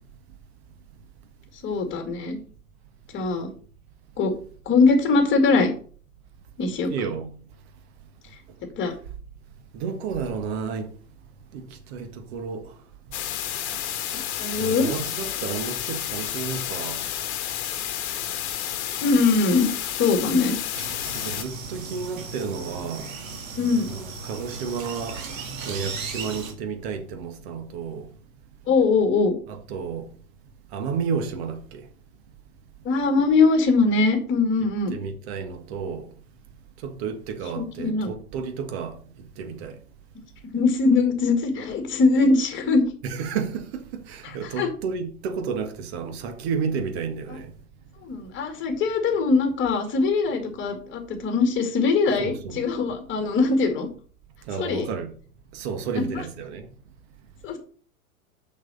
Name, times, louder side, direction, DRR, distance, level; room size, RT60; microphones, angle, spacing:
voice 1, 1.6-2.4 3.1-3.5 4.2-4.3 4.7-5.7 6.6-6.9 8.8-8.9 14.4-14.9 19.0-20.6 23.6-23.9 28.7-29.3 32.8-34.9 37.6-38.1 40.5-42.8 44.6-44.7 48.0-53.9 54.6-54.9 56.1-56.2 57.4-57.6, left 4 dB, 25° left, 2.4 m, -21 dB
voice 2, 6.9-7.3 9.7-10.9 11.5-12.7 14.6-17.0 21.1-23.1 23.9-25.2 25.6-28.1 29.5-30.1 30.7-31.8 34.9-36.1 36.8-39.0 39.4-39.8 43.0-47.5 52.2-52.7 54.5-55.1 55.5-56.7, right 5 dB, 45° right, 1.6 m, -31 dB
sound 1, 13.1-21.4, left 11 dB, 50° left, 1.4 m, -31 dB
sound 2, 20.7-26.5, right 4 dB, 65° right, 1.9 m, -36 dB
6.5 x 6.2 x 6.3 m
figure-of-eight pair, 100°, 43 cm